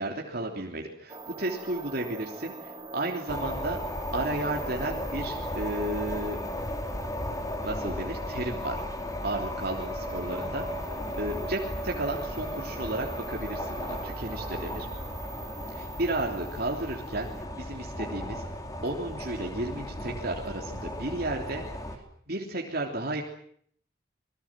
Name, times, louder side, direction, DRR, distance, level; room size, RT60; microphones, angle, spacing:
voice 1, 0.0-3.8 4.1-6.4 7.6-8.8 9.2-14.9 15.7-17.3 17.6-18.4 18.8-22.0 22.3-23.2, right 2 dB, 55° right, 0 dB, 3.3 m, -33 dB
sound 1, 1.1-17.4, right 3 dB, 25° right, 2.8 m, -44 dB
sound 2, 3.3-22.0, left 1 dB, 20° left, 3.4 m, -35 dB
27.0 x 22.0 x 7.6 m, 0.63 s
head